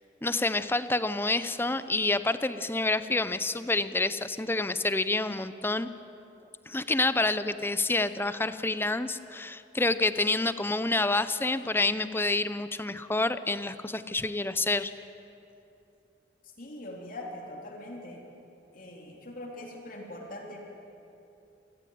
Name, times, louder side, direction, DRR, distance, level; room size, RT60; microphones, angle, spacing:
voice 1, 0.2-5.9 6.7-14.9, left 2 dB, 15° left, 13 dB, 0.8 m, -28 dB
voice 2, 16.6-18.3 18.7-20.7, left 1 dB, 50° left, 0 dB, 3.4 m, -42 dB
28.0 x 19.0 x 9.4 m, 2.9 s
head